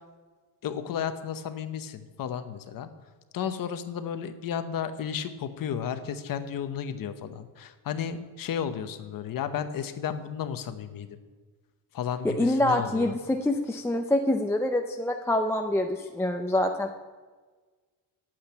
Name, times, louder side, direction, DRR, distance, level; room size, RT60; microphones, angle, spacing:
voice 1, 0.6-2.9 3.3-11.2 11.9-13.2, left 8 dB, 55° left, 10 dB, 0.9 m, -33 dB
voice 2, 12.2-16.9, left 1 dB, 5° left, 3 dB, 0.4 m, -26 dB
8.9 x 8.0 x 8.9 m, 1.4 s
cardioid pair, 165°, 41 cm